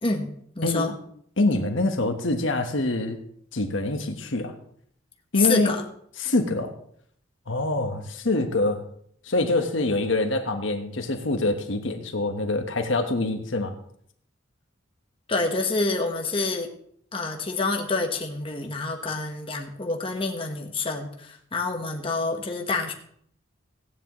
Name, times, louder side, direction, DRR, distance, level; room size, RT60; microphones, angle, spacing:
voice 1, 0.0-0.9 5.4-5.8 15.3-16.7 17.1-22.9, left 3 dB, 25° left, 3 dB, 1.2 m, -27 dB
voice 2, 0.6-1.0 1.4-3.2 3.5-4.5 5.3-5.7 6.2-6.7 7.5-8.8 9.2-13.7, left 2 dB, 70° left, 5 dB, 1.2 m, -25 dB
15.5 x 9.8 x 3.1 m, 0.65 s
head